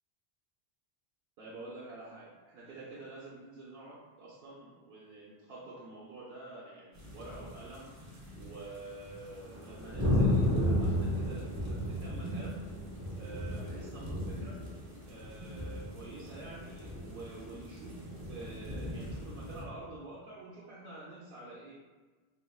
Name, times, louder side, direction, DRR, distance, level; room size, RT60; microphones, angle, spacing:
voice 1, 1.4-12.7 13.1-14.7 15.1-21.7, right 2 dB, 65° right, -6 dB, 0.8 m, -48 dB
sound 1, 6.9-8.7 9.0-19.6, left 1 dB, 20° right, 0.6 m, -34 dB
3.4 x 3.3 x 2.3 m, 1.3 s
omnidirectional pair, 1.1 m